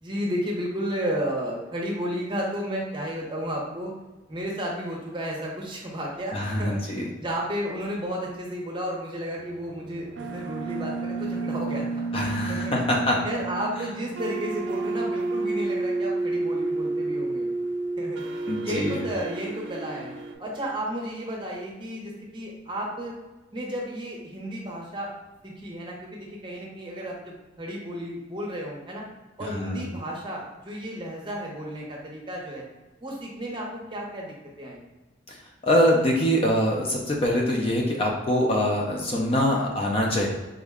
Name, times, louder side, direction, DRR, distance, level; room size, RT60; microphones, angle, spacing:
voice 1, 0.0-3.9 4.3-6.8 7.2-13.0 13.2-17.5 18.0-18.2 18.6-20.1 20.4-23.1 23.5-25.1 25.4-27.2 27.6-29.0 29.4-32.6 33.0-34.8, equal, 25° right, -2 dB, 0.7 m, -33 dB
voice 2, 6.3-7.1 12.1-13.2 18.5-19.0 29.4-29.9 35.3-35.4 35.6-40.3, equal, 30° left, -1 dB, 0.4 m, -24 dB
sound 1, 9.4-20.3, right 3 dB, 75° right, 0.4 m, -30 dB
3.6 x 2.1 x 3.5 m, 1.1 s
head